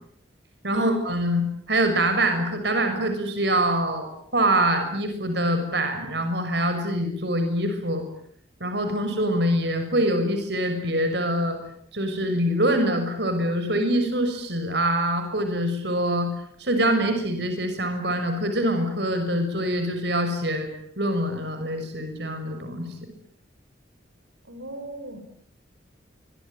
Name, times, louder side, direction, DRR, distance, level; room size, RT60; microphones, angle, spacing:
voice 1, 0.6-8.0 8.6-11.6 11.9-16.3 16.6-20.7 21.0-22.9, right 1 dB, 65° right, 6 dB, 6.4 m, -24 dB
voice 2, 24.5-25.2, equal, 85° right, 7 dB, 6.6 m, -33 dB
27.0 x 24.0 x 9.1 m, 0.64 s
head